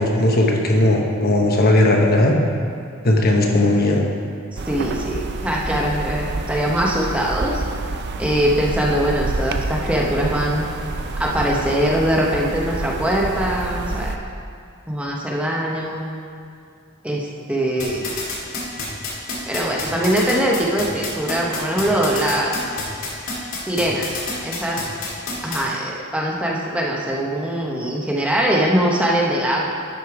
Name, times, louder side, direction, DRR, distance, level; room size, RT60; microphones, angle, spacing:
voice 1, 0.0-2.3 3.0-4.0, left 1 dB, 50° left, 0 dB, 1.1 m, -17 dB
voice 2, 4.5-7.6 8.2-10.7 11.2-14.1 14.9-16.0 17.0-18.1 19.5-22.5 23.7-24.1 24.4-24.8 25.4-29.6, right 1 dB, 5° right, -3 dB, 0.9 m, -22 dB
sound 1, 4.6-14.2, right 2 dB, 55° right, 0.5 m, -28 dB
sound 2, 17.8-25.6, left 4 dB, 80° left, 2.2 m, -28 dB
11.5 x 5.2 x 4.8 m, 2.4 s
head